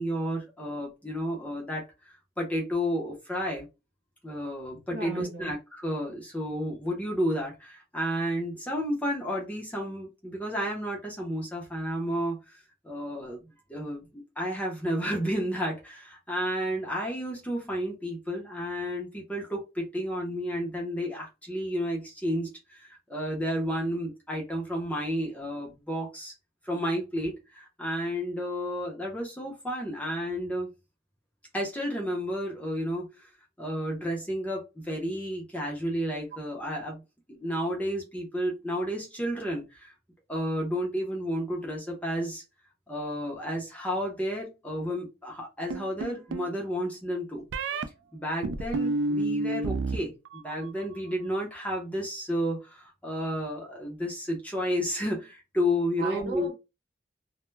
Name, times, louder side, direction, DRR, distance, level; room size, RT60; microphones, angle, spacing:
voice 1, 0.0-3.7 4.2-13.4 13.7-26.3 26.6-30.7 31.5-33.3 33.6-37.0 37.3-39.9 40.3-42.4 42.9-47.4 48.1-56.5, equal, 10° left, 0.5 m, -32 dB
voice 2, 4.9-5.5 56.0-56.5, right 2 dB, 55° right, 0.9 m, -36 dB
sound 1, 45.7-46.5 47.5-47.9 48.4-50.0 50.3-50.8, right 2 dB, 80° right, 0.3 m, -30 dB
2.1 x 2.0 x 3.1 m
head